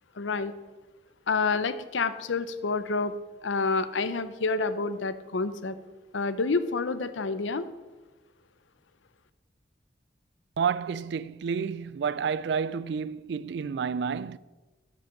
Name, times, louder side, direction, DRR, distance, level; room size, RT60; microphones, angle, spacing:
voice 1, 0.2-0.5 1.3-3.1 3.4-5.8 6.1-7.7, left 4 dB, 85° left, 0.6 m, -28 dB
voice 2, 10.6-14.4, right 6 dB, 65° right, 0.3 m, -30 dB
8.4 x 7.8 x 5.8 m
head